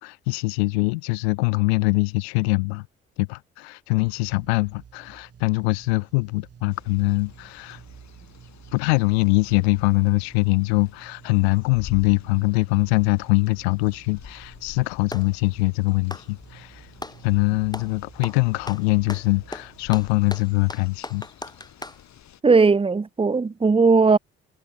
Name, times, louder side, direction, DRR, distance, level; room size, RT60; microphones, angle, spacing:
voice 1, 0.0-2.9 3.2-7.8 8.7-16.9 17.2-21.2, left 28 dB, 90° left, 0.9 m, -23 dB
sound 1, 4.0-20.7, right 7 dB, 50° right, 3.9 m, -50 dB
sound 2, 6.7-22.4, left 11 dB, 60° left, 3.6 m, -48 dB
Clapping, 14.4-15.4 16.0-17.2 17.7-18.0 18.2-22.0, left 2 dB, 15° left, 2.1 m, -38 dB
voice 2, 22.4-24.2, right 4 dB, 20° right, 0.8 m, -17 dB
hypercardioid pair, 55°, 31 cm